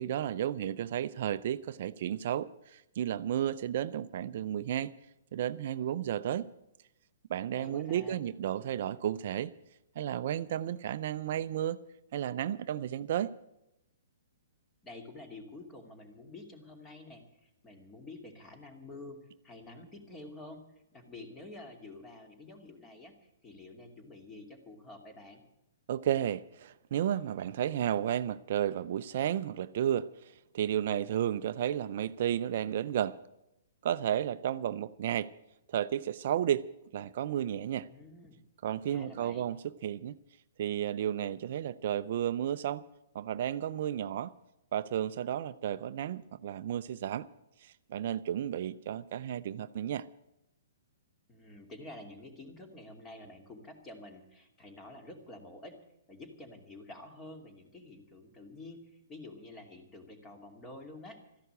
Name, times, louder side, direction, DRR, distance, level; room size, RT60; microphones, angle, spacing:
voice 1, 0.0-4.9 5.3-6.5 7.3-9.5 10.0-11.8 12.1-13.3 25.9-33.2 33.8-35.3 35.7-37.9 38.6-40.2 40.6-42.8 43.1-44.3 44.7-47.3 47.6-50.1, right 10 dB, 55° right, 0.5 m, -33 dB
voice 2, 7.5-8.2 14.8-20.6 20.9-25.4 37.9-38.4 38.9-39.4 51.3-55.8 56.1-61.2, left 2 dB, 20° left, 2.5 m, -49 dB
14.0 x 11.0 x 8.1 m
hypercardioid pair, 125°, 0 cm